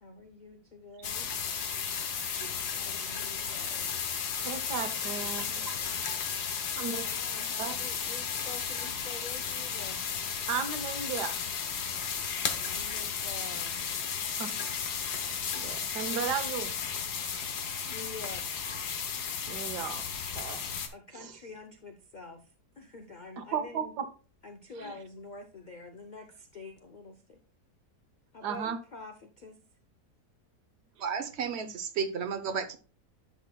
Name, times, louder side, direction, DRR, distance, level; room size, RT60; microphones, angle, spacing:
voice 1, 0.0-1.3 2.7-4.0 5.6-6.4 7.0-10.0 12.5-13.8 17.9-18.7 20.9-22.5 22.8-23.9 24.4-27.4 28.3-29.6, left 3 dB, 60° left, 5 dB, 0.5 m, -47 dB
sound 1, 1.0-20.9, left 7 dB, 80° left, 1.5 m, -34 dB
voice 2, 4.4-5.8 6.8-7.1 7.5-7.8 10.5-11.4 14.4-14.5 14.9-16.7 17.2-17.3 18.7-18.8 19.5-20.0 20.4-20.6 21.1-21.3 23.4-24.1 24.8-24.9 28.4-28.8, right 7 dB, 85° right, 9 dB, 1.5 m, -35 dB
voice 3, 31.0-32.8, right 6 dB, 50° right, 7 dB, 1.0 m, -33 dB
11.0 x 6.1 x 2.3 m, 0.36 s
omnidirectional pair, 1.7 m